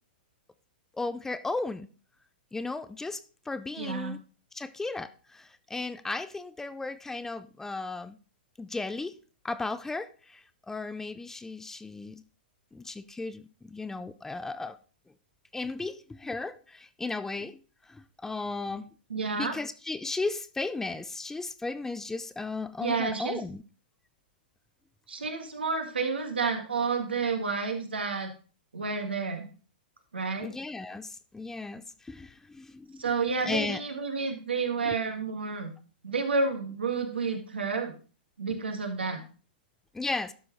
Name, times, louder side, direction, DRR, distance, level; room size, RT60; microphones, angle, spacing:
voice 1, 1.0-1.9 2.5-3.2 3.5-4.2 4.5-8.2 8.6-9.2 9.4-12.2 12.7-14.8 15.5-17.6 17.9-18.8 19.3-23.6 30.4-33.0 33.4-33.8 34.8-34.9 39.9-40.3, left 3 dB, 10° left, 13 dB, 0.5 m, -35 dB
voice 2, 3.8-4.2 19.1-19.5 22.8-23.4 25.1-28.3 28.7-29.5 30.1-30.5 33.0-35.7 36.0-37.9 38.4-39.2, right 4 dB, 90° right, 5 dB, 1.7 m, -30 dB
12.0 x 4.7 x 3.9 m, 0.37 s
hypercardioid pair, 120°, 5 cm